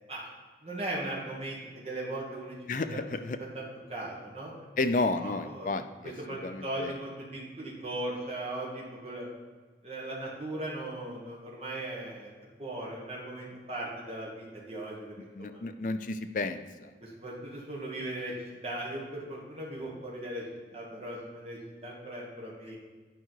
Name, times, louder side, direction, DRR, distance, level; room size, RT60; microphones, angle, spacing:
voice 1, 0.6-2.6 2.9-3.0 3.4-4.5 5.2-5.7 6.0-9.3 9.8-12.3 12.6-15.6 17.0-20.4 20.7-22.8, right 1 dB, 35° right, -4 dB, 1.5 m, -38 dB
voice 2, 2.7-3.4 4.8-6.1 6.4-6.9 15.4-16.9, left 3 dB, 45° left, 9 dB, 0.4 m, -32 dB
9.1 x 4.9 x 4.6 m, 1.4 s
head